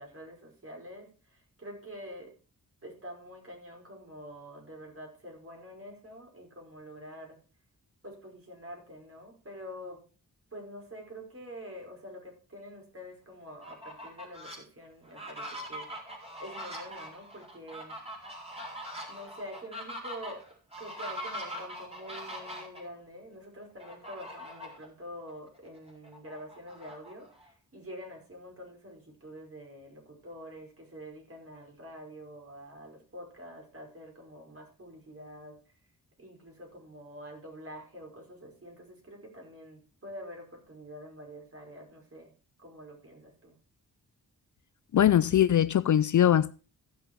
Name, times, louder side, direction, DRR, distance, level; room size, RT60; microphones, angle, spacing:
voice 1, 0.0-2.3 2.8-7.4 8.0-10.0 10.5-16.1 16.4-17.9 19.1-20.4 20.8-35.7 36.2-42.3 42.6-43.6, equal, 35° right, 5.3 m, -46 dB
Fowl, 13.5-14.6 15.0-22.8 23.8-24.9 25.3-25.4 25.8-27.5, equal, 15° right, 4.2 m, -42 dB
voice 2, 44.9-46.5, left 10 dB, 55° left, 0.5 m, -22 dB
15.0 x 6.5 x 4.6 m
cardioid pair, 75°, 37 cm